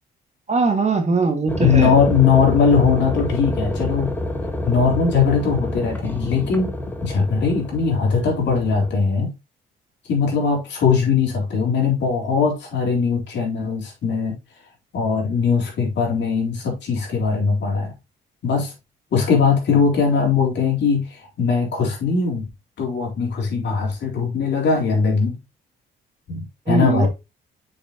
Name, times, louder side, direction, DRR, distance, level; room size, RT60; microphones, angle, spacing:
voice 1, 0.5-1.9 26.7-27.1, right 4 dB, 35° right, 1.9 m, -20 dB
sound 1, 1.5-9.0, left 1 dB, 10° left, 1.4 m, -28 dB
voice 2, 1.6-4.1 4.6-6.7 7.0-9.3 10.1-14.4 14.9-17.9 18.4-18.7 19.1-22.5 22.8-25.3 26.3-27.1, left 5 dB, 65° left, 3.9 m, -20 dB
7.0 x 6.2 x 2.9 m
cardioid pair, 90°, 20 cm